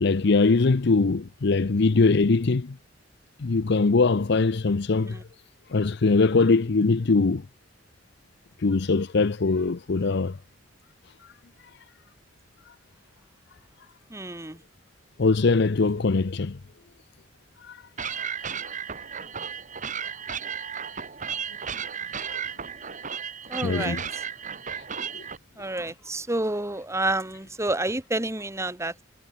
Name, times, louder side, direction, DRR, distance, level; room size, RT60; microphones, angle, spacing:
voice 1, 0.0-2.8 3.4-5.2 5.7-7.4 8.6-10.4 15.2-16.6 17.7-17.8 23.6-24.0 25.1-25.2, left 3 dB, 65° left, 0.6 m, -22 dB
voice 2, 14.1-14.6 23.5-24.0 25.6-29.0, right 2 dB, 15° right, 2.1 m, -29 dB
sound 1, 18.0-25.4, right 7 dB, 40° right, 2.1 m, -34 dB
head